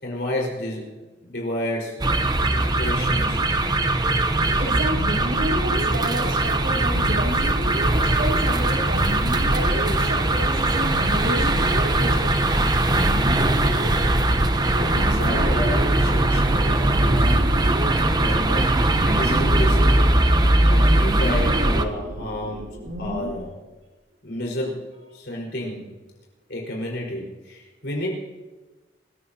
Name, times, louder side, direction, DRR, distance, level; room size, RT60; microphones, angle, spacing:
voice 1, 0.0-0.9 1.2-2.1 2.5-3.4 14.7-16.9 18.1-20.3 20.7-23.5 24.2-25.8 26.5-28.1, left 1 dB, 70° left, -2 dB, 5.1 m, -31 dB
sound 1, 2.0-21.9, right 1 dB, 25° right, 0.9 m, -20 dB
sound 2, 4.4-23.3, equal, 70° right, 3.1 m, -32 dB
voice 2, 4.6-7.6 7.9-9.2 9.5-12.6, right 1 dB, 85° right, -3 dB, 3.9 m, -31 dB
26.0 x 15.5 x 2.9 m, 1.2 s
head